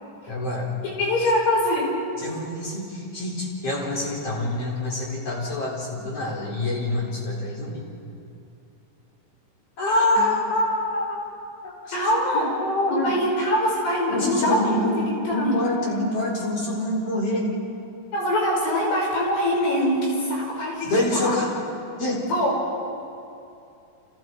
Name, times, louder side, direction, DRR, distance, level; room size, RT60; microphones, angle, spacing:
voice 1, 0.3-0.7 2.2-7.8 9.8-11.2 11.6-12.0 12.3-13.1 14.1-15.0 15.3-17.5 20.8-21.5 22.0-22.2, left 1 dB, 35° left, -3 dB, 5.2 m, -26 dB
voice 2, 1.0-1.9 10.2-10.3 11.9-12.5 12.9-14.8 15.1-15.6 18.1-21.4 22.3-22.6, left 1 dB, 80° left, -3 dB, 7.5 m, -23 dB
29.5 x 28.5 x 4.7 m, 2.7 s
omnidirectional pair, 4.8 m